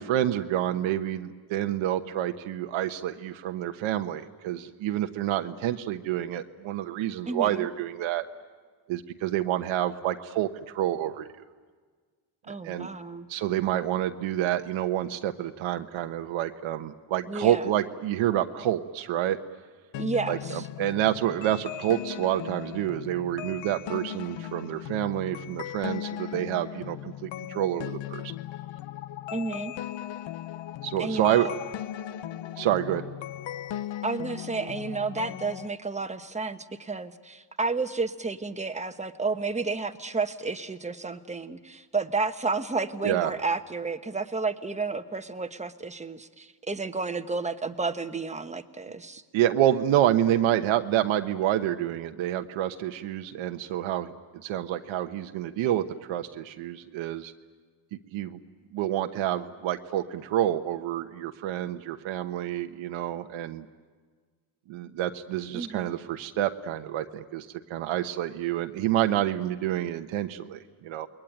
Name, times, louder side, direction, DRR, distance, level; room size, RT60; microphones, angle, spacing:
voice 1, 0.0-8.2 8.9-11.3 12.5-12.9 13.3-19.4 20.3-27.0 27.2-28.3 30.8-31.5 32.6-33.0 43.0-43.3 49.3-54.1 54.4-57.3 58.1-58.4 58.7-63.7 64.7-71.1, right 12 dB, 85° right, 6 dB, 1.2 m, -28 dB
voice 2, 7.3-7.7 12.5-13.3 17.3-17.6 20.0-20.7 29.3-29.7 31.0-31.5 34.0-49.2 65.5-65.9, right 4 dB, 15° right, 9 dB, 1.1 m, -31 dB
sound 1, 19.9-35.7, left 13 dB, 70° left, 0.9 m, -38 dB
28.5 x 21.5 x 9.2 m, 1.5 s
cardioid pair, 115°, 46 cm